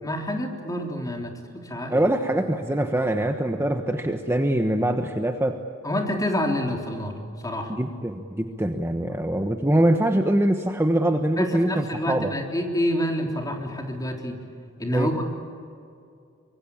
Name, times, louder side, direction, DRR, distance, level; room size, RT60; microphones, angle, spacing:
voice 1, 0.0-2.1 5.8-7.2 7.4-7.7 11.4-14.4 14.8-15.2, left 1 dB, 20° left, 2 dB, 3.6 m, -28 dB
voice 2, 1.9-5.6 7.7-12.3 14.9-15.1, right 1 dB, 10° right, 5 dB, 1.2 m, -23 dB
25.0 x 23.5 x 8.7 m, 2.5 s
head